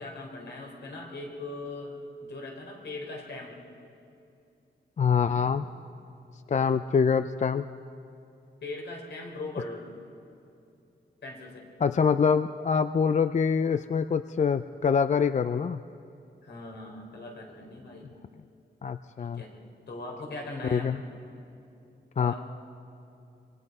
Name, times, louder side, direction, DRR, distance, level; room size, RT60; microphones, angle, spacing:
voice 1, 0.0-1.9 2.2-3.6 6.6-6.7 8.6-9.9 11.2-11.7 16.4-18.1 19.2-19.5 19.9-21.0 22.2-22.4, left 2 dB, 75° left, 0 dB, 4.3 m, -40 dB
voice 2, 5.0-5.6 6.5-7.6 11.8-15.8 18.8-19.4 20.6-21.0 22.2-22.3, left 6 dB, 40° left, 11 dB, 0.4 m, -25 dB
25.5 x 22.0 x 5.4 m, 2.7 s
wide cardioid pair, 115°, 18 cm